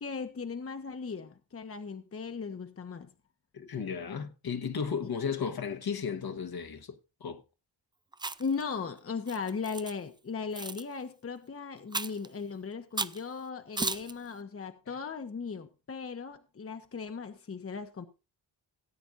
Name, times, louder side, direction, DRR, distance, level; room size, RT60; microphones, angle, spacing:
voice 1, 0.0-3.1 5.0-5.1 8.4-18.1, left 5 dB, 30° left, 1.1 m, -37 dB
voice 2, 3.5-6.9 7.2-7.4, left 6 dB, 55° left, 1.6 m, -34 dB
Chewing mastication, 8.1-8.6 9.3-9.9 10.5-10.8 11.9-12.3 13.0-13.2 13.8-14.1, right 3 dB, 10° right, 0.5 m, -34 dB
18.0 x 9.0 x 2.6 m
cardioid pair, 100°, 44 cm